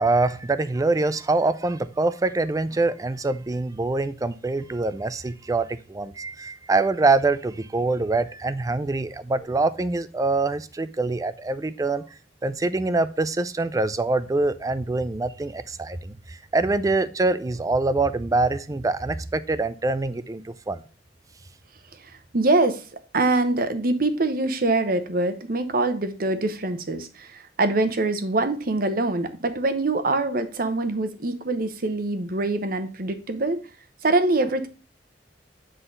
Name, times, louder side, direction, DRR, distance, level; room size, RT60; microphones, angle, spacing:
voice 1, 0.0-12.0 12.4-16.1 16.5-20.8, right 3 dB, 20° right, 0.4 m, -24 dB
voice 2, 22.3-22.8 23.1-27.3 27.6-33.6 34.0-34.7, right 2 dB, 55° right, 0.9 m, -24 dB
7.8 x 3.9 x 3.8 m
head